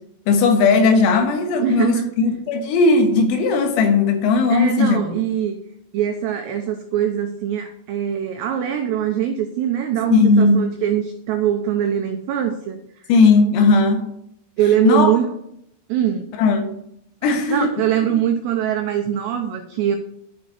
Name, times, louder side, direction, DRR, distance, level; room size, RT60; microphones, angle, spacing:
voice 1, 0.3-5.2 10.1-10.6 13.1-14.1 14.8-15.1 16.4-16.7 17.2-17.7 18.1-18.2, left 3 dB, 90° left, 5 dB, 4.2 m, -17 dB
voice 2, 1.6-2.3 4.5-5.6 5.9-13.1 14.6-15.3 15.9-16.3 17.5-20.0, right 10 dB, 85° right, 4 dB, 2.4 m, -22 dB
11.0 x 5.0 x 8.2 m, 0.74 s
omnidirectional pair, 6.0 m